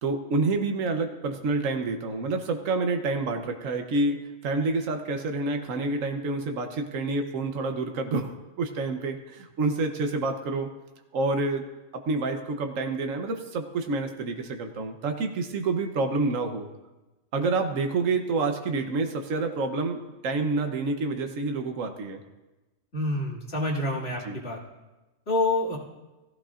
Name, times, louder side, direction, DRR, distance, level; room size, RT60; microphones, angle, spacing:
voice 1, 0.0-8.3 8.6-10.7 11.1-11.6 11.9-16.7 17.3-22.2 24.2-24.4, right 3 dB, 75° right, 5 dB, 1.3 m, -28 dB
voice 2, 22.9-24.6 25.3-25.8, left 2 dB, 50° left, -4 dB, 2.6 m, -27 dB
17.5 x 15.0 x 2.5 m, 1.1 s
omnidirectional pair, 1.4 m